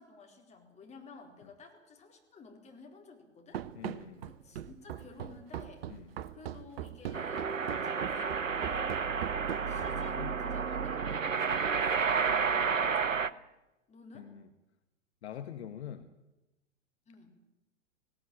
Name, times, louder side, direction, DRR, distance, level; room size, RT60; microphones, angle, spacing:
voice 1, 0.0-3.6 4.3-5.9 6.3-7.5 7.8-13.3 13.9-14.3 17.1-17.4, left 4 dB, 15° left, 2 dB, 4.1 m, -53 dB
Run, 3.5-10.2, right 10 dB, 50° right, 1.0 m, -41 dB
voice 2, 3.7-4.3 5.9-6.1 9.9-10.4 12.5-12.9 14.1-14.5 15.2-16.1, left 9 dB, 55° left, 9 dB, 1.4 m, -45 dB
sound 1, 7.1-13.3, right 5 dB, 80° right, 0.9 m, -31 dB
18.5 x 17.5 x 8.9 m, 0.97 s
figure-of-eight pair, 105°, 38 cm